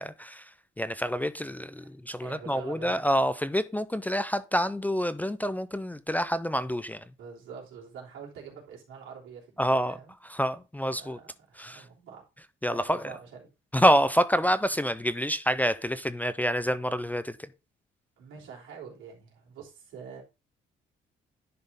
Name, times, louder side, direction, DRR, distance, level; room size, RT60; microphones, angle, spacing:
voice 1, 0.0-7.0 9.6-10.0 10.3-11.2 11.6-11.8 12.6-13.1 13.7-17.4, equal, 10° left, 0.4 m, -27 dB
voice 2, 2.2-3.0 7.2-10.1 10.9-12.2 12.7-13.5 18.2-20.2, right 6 dB, 80° right, 3.2 m, -45 dB
10.5 x 3.7 x 4.0 m
cardioid pair, 90°, 20 cm